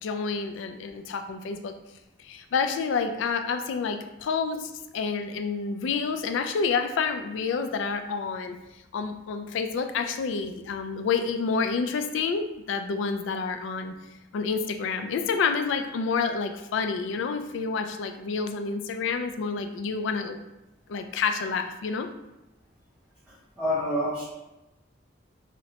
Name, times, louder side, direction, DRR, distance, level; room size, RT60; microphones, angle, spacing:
voice 1, 0.0-1.7 2.2-8.6 8.9-13.9 14.3-20.4 20.9-22.1, left 5 dB, 75° left, 7 dB, 0.3 m, -29 dB
voice 2, 23.6-24.2, left 1 dB, 10° right, -10 dB, 0.7 m, -26 dB
4.0 x 2.1 x 2.8 m, 0.95 s
head